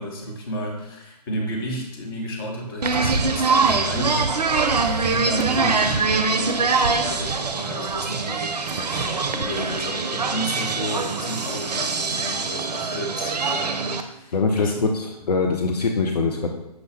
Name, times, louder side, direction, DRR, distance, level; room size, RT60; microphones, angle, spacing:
voice 1, 0.0-4.4 5.1-9.0 9.3-14.8, equal, 35° left, 0 dB, 0.8 m, -32 dB
sound 1, 2.8-14.0, right 4 dB, 75° right, 0.4 m, -23 dB
voice 2, 14.3-16.5, left 4 dB, 70° left, 2 dB, 0.5 m, -23 dB
5.8 x 2.1 x 3.2 m, 0.87 s
figure-of-eight pair, 135°, 21 cm